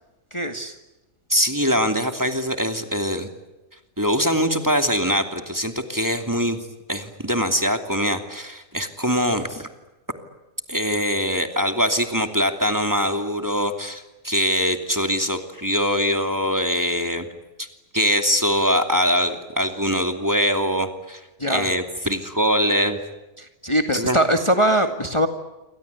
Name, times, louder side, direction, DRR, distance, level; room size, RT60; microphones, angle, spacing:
voice 1, 0.3-0.7 21.4-21.7 23.4-25.3, right 1 dB, 20° left, 6 dB, 2.1 m, -21 dB
voice 2, 1.3-3.3 4.0-6.6 6.9-9.7 10.7-17.3 17.6-17.7 17.9-21.2 21.5-23.0 23.9-24.2, equal, 15° right, 6 dB, 2.7 m, -23 dB
28.5 x 25.0 x 8.3 m, 1.1 s
omnidirectional pair, 1.4 m